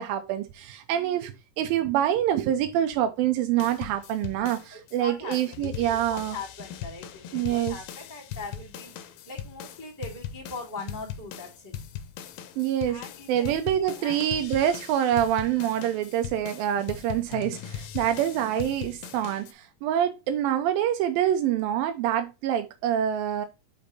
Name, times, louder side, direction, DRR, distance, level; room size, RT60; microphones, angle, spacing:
voice 1, 0.0-6.4 7.3-7.8 12.6-13.0 13.3-23.5, right 11 dB, 90° right, 2.4 m, -26 dB
sound 1, 3.6-5.0 5.3-19.5, left 9 dB, 85° left, 2.5 m, -40 dB
voice 2, 4.7-8.9 9.3-11.7 12.9-14.2 18.3-18.5, left 3 dB, 5° left, 2.0 m, -41 dB
5.6 x 5.2 x 4.1 m
omnidirectional pair, 4.1 m